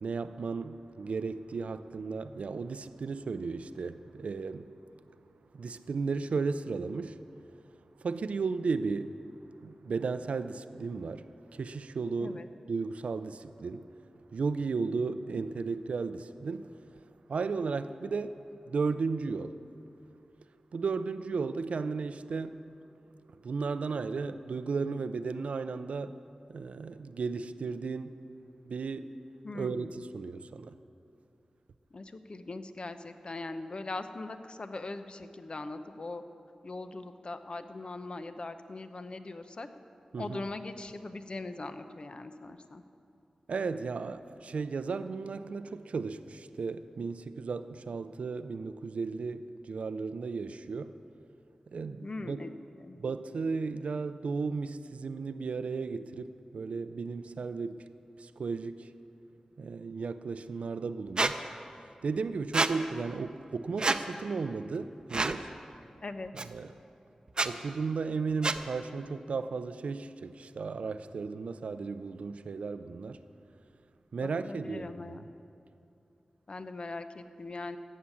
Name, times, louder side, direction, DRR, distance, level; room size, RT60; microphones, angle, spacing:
voice 1, 0.0-4.7 5.5-7.2 8.0-9.2 9.6-11.3 11.5-12.4 12.7-13.9 14.3-16.8 17.3-19.6 20.7-22.7 23.3-26.2 26.5-28.2 28.6-29.1 29.5-30.7 40.1-40.4 43.5-51.0 51.7-52.5 53.0-57.9 58.2-58.9 59.6-61.5 62.0-65.5 66.5-66.7 67.4-73.2 74.1-75.2, right 4 dB, 85° right, 0.5 m, -35 dB
voice 2, 29.4-29.9 31.9-36.2 36.6-39.7 40.2-42.8 52.0-52.5 52.8-53.0 66.0-66.3 74.2-75.2 76.5-77.8, left 2 dB, 50° left, 0.8 m, -40 dB
Squeak, 61.2-61.3 62.5-62.7 63.8-64.0 65.1-65.4 66.4-66.5 67.3-67.5 68.4-68.6, right 3 dB, 45° right, 0.7 m, -27 dB
14.5 x 7.4 x 9.6 m
wide cardioid pair, 60°, 2 cm